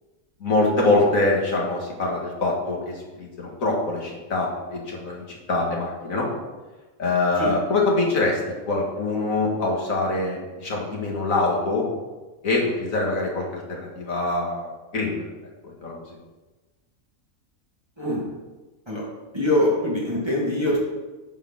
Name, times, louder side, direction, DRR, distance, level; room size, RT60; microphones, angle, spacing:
voice 1, 0.4-6.3 7.0-8.4 8.7-11.9 12.4-15.3 15.6-16.0, left 2 dB, 70° left, -2 dB, 2.3 m, -24 dB
voice 2, 18.0-18.3 18.9-19.0 19.3-20.8, left 1 dB, 20° right, -6 dB, 2.2 m, -23 dB
9.2 x 5.0 x 6.3 m, 1.2 s
omnidirectional pair, 1.5 m